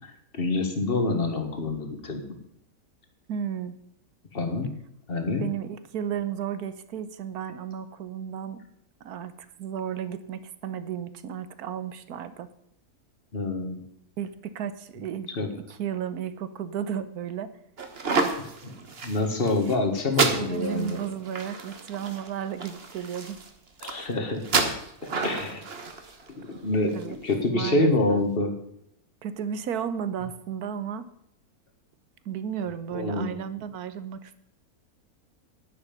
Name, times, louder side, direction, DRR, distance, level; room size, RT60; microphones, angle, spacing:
voice 1, 0.3-2.2 4.3-4.7 5.1-5.5 13.3-13.8 15.3-15.5 19.0-21.1 23.8-24.4 25.2-25.6 26.4-28.5 32.9-33.4, left 2 dB, 40° left, 5 dB, 1.8 m, -26 dB
voice 2, 3.3-3.7 5.4-8.6 9.0-12.5 14.2-17.5 18.1-18.3 18.6-18.9 20.4-23.4 26.4-26.5 26.9-27.2 27.5-28.2 29.2-31.0 32.2-34.4, right 8 dB, 80° right, 13 dB, 1.3 m, -34 dB
sound 1, 17.8-27.3, right 4 dB, 40° right, 1.4 m, -31 dB
10.5 x 10.0 x 5.3 m, 0.74 s
omnidirectional pair, 1.6 m